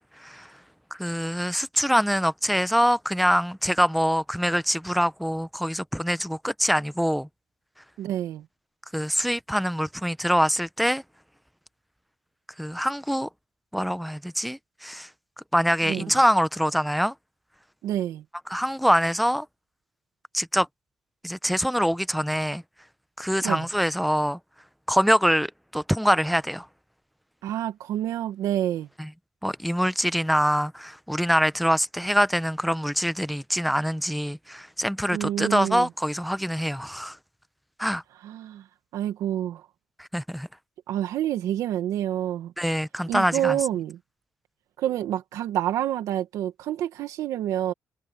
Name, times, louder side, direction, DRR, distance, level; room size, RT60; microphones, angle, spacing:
voice 1, 0.2-0.5 0.9-7.3 8.9-11.0 12.6-13.3 13.7-15.1 15.5-17.1 18.5-19.5 20.3-20.7 21.2-22.6 23.2-24.4 24.9-26.7 29.0-29.1 29.4-37.2 37.8-38.0 40.0-40.5 42.6-43.6, equal, ahead, 0.9 m, -24 dB
voice 2, 8.0-8.5 15.8-16.2 17.8-18.2 23.4-23.6 27.4-28.9 35.1-35.9 38.2-38.7 38.9-39.7 40.9-42.5 43.1-44.0 44.8-47.7, right 11 dB, 85° right, 1.3 m, -28 dB
supercardioid pair, 65°, 5 cm